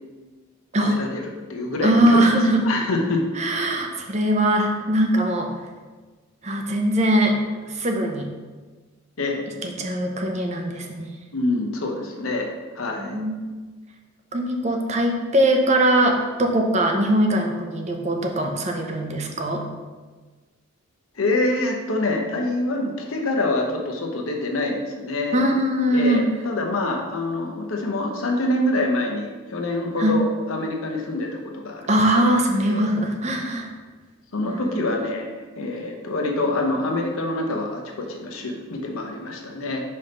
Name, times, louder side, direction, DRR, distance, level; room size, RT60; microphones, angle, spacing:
voice 1, 0.8-1.2 1.5-2.2 2.6-3.3 9.2-9.4 11.3-12.5 12.7-13.2 21.2-25.4 25.9-32.3 32.7-32.8 34.3-39.8, left 2 dB, 80° left, 2 dB, 0.9 m, -26 dB
voice 2, 1.8-2.6 3.4-5.5 6.4-7.3 7.7-8.3 9.6-11.2 13.0-13.5 14.3-19.6 25.3-26.2 30.0-30.1 31.9-33.7 34.5-34.8, right 1 dB, 35° right, 2 dB, 0.6 m, -21 dB
5.4 x 3.5 x 5.3 m, 1.3 s
head